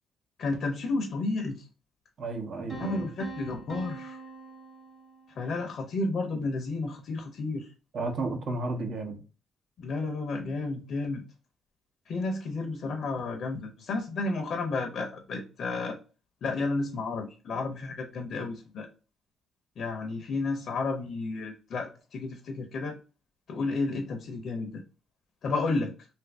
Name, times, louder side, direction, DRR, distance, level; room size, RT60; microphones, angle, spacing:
voice 1, 0.4-1.7 2.8-4.2 5.3-7.7 9.8-11.2 12.1-16.0 16.4-18.9 19.8-23.0 23.5-24.8 25.4-25.9, left 3 dB, 65° left, 0.6 m, -32 dB
voice 2, 2.2-3.1 7.9-9.2, right 3 dB, 60° right, 0.8 m, -33 dB
sound 1, 2.7-5.6, right 4 dB, 15° right, 0.8 m, -43 dB
2.7 x 2.5 x 3.3 m
cardioid pair, 90°, 0 cm